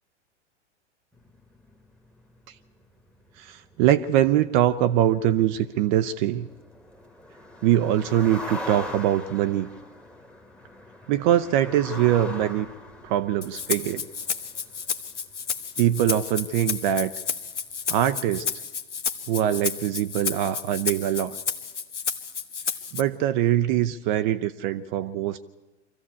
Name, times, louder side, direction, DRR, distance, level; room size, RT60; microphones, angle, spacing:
sound 1, 1.1-16.5 16.7-17.1 17.5-17.6, left 1 dB, 5° left, 1.4 m, -42 dB
voice 1, 3.4-6.5 7.6-9.7 11.1-12.7 13.0-14.1 15.8-17.1 17.9-18.5 19.3-21.4 22.9-25.4, right 11 dB, 40° right, 10 dB, 0.7 m, -23 dB
Rattle (instrument), 13.4-23.0, left 6 dB, 85° left, 1.1 m, -31 dB
24.0 x 14.5 x 8.4 m, 1.2 s
figure-of-eight pair, 100°, 35 cm